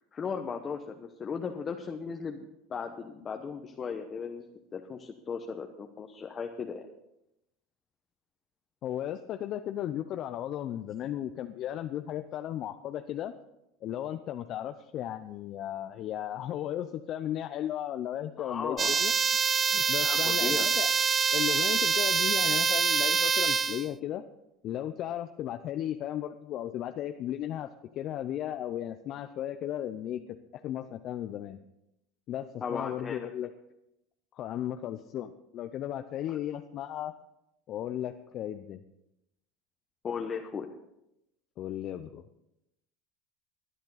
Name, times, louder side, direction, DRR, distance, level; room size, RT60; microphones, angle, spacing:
voice 1, 0.1-4.5 4.7-6.9 18.4-19.0 20.0-20.7 32.6-33.3 36.3-36.4 40.0-40.7, left 6 dB, 30° left, 3 dB, 1.1 m, -36 dB
voice 2, 8.8-13.3 13.8-19.1 19.7-20.9 21.3-24.2 24.6-27.7 27.9-30.4 30.6-31.6 32.3-33.5 34.3-37.1 37.7-38.8 41.6-42.2, left 11 dB, 50° left, 8 dB, 0.6 m, -35 dB
sound 1, 18.8-23.9, right 6 dB, 35° right, 0.4 m, -25 dB
19.0 x 10.0 x 4.1 m, 0.86 s
supercardioid pair, 100°, 0 cm